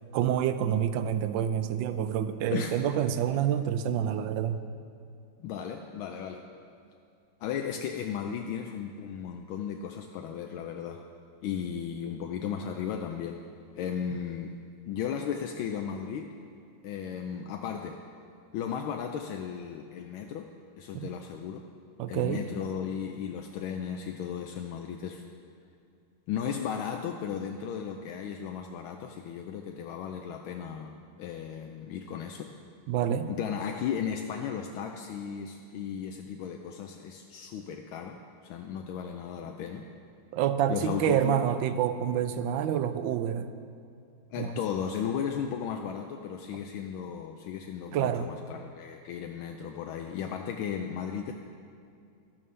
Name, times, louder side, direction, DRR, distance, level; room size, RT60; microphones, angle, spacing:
voice 1, 0.1-4.6 20.9-21.1 22.0-22.4 32.9-33.3 40.3-43.5 44.4-44.5 47.9-48.3, right 9 dB, 75° right, 11 dB, 1.2 m, -28 dB
voice 2, 5.4-6.5 7.4-11.0 11.4-13.4 13.8-14.6 14.9-16.3 16.8-18.0 18.5-20.5 20.8-21.7 22.1-25.2 26.3-32.5 33.3-39.9 40.7-41.4 44.3-51.3, left 8 dB, 85° left, 3 dB, 1.4 m, -35 dB
12.5 x 12.0 x 3.3 m, 2.4 s
omnidirectional pair, 2.2 m